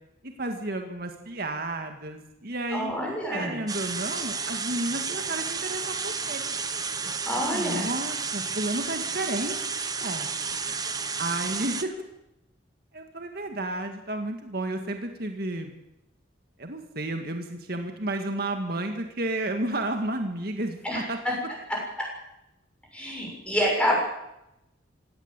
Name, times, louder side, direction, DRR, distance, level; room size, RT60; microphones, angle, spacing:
voice 1, 0.2-2.9 3.3-6.6 7.5-9.7 10.0-10.3 11.2-12.0 12.9-15.7 16.6-21.2, right 1 dB, 50° right, 4 dB, 2.0 m, -32 dB
voice 2, 2.7-3.6 7.3-7.9 20.8-21.0 21.7-21.8 22.9-24.0, equal, 5° left, -2 dB, 6.7 m, -27 dB
sound 1, 3.7-11.8, right 5 dB, 20° right, 1.1 m, -31 dB
17.5 x 17.0 x 9.0 m, 0.86 s
head